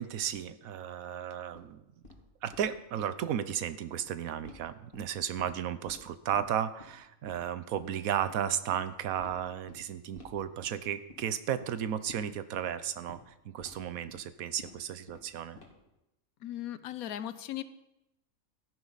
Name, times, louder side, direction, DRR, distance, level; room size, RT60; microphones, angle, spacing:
voice 1, 0.0-1.8 2.4-15.6, right 9 dB, 80° right, 13 dB, 1.1 m, -34 dB
sound 1, 1.5-1.6 2.0-2.2 2.5-2.7 3.0-3.1 3.4-3.6 4.0-4.1 4.4-4.6 4.9-5.5 5.9-6.0 6.3-6.4 6.8-6.9 7.3-7.4 7.7-7.9 8.2-8.3 8.7-8.8 9.2-9.3 9.7-9.8 10.1-10.3 10.6-10.8 11.1-11.3 11.6-11.7 12.1-12.2 12.6-12.7 13.1-13.2 13.6-13.7 14.1-14.2 14.6-14.7 15.1-15.3 15.6-15.9, left 2 dB, 40° left, 2.2 m, -50 dB
voice 2, 16.4-17.6, left 12 dB, 85° left, 13 dB, 1.2 m, -37 dB
14.0 x 10.5 x 4.0 m, 0.89 s
omnidirectional pair, 1.5 m